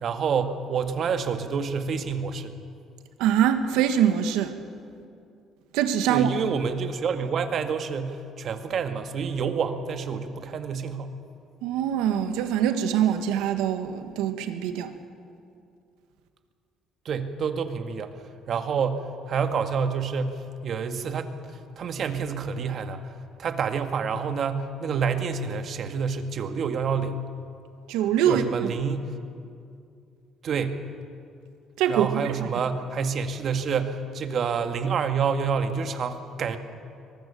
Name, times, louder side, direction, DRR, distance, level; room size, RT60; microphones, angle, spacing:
voice 1, 0.0-2.6 6.1-11.2 17.1-18.1 18.5-21.3 21.8-23.0 23.4-27.3 28.3-29.1 30.4-30.8 31.9-36.6, right 6 dB, 55° right, 7 dB, 1.8 m, -28 dB
voice 2, 3.2-4.5 5.7-6.3 11.6-14.9 27.9-28.7 31.8-32.5, right 9 dB, 85° right, 8 dB, 1.5 m, -24 dB
23.5 x 19.5 x 6.9 m, 2.4 s
cardioid pair, 85°, 0 cm